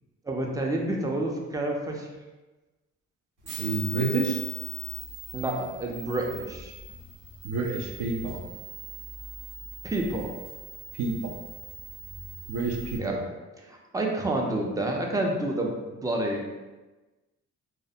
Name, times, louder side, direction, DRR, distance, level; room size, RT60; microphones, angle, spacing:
voice 1, 0.3-2.1 5.3-6.7 9.8-10.4 13.0-13.2 13.6-16.4, right 1 dB, 10° right, 0 dB, 0.4 m, -29 dB
sound 1, 3.4-13.0, right 4 dB, 85° right, 1.1 m, -40 dB
voice 2, 3.6-4.4 7.4-8.4 11.0-11.3 12.5-13.2, right 3 dB, 70° right, 2 dB, 0.5 m, -29 dB
2.4 x 2.0 x 2.6 m, 1.2 s
cardioid pair, 90°, 30 cm